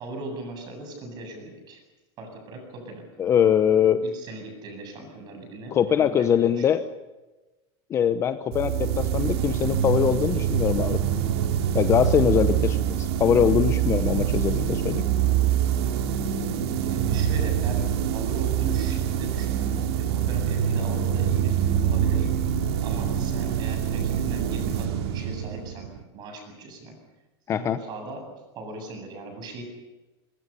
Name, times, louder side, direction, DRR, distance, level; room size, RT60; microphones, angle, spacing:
voice 1, 0.0-1.8 2.2-3.1 4.0-6.7 16.8-22.3 22.8-27.0 27.5-28.3 28.5-29.6, right 2 dB, 30° right, 5 dB, 8.0 m, -38 dB
voice 2, 3.2-4.0 5.7-6.8 7.9-11.0 11.7-15.0 27.5-27.8, left 9 dB, 20° left, 10 dB, 0.8 m, -22 dB
sound 1, 8.5-26.0, right 9 dB, 70° right, 2.7 m, -25 dB
24.0 x 24.0 x 7.0 m, 1.1 s
supercardioid pair, 165°, 14 cm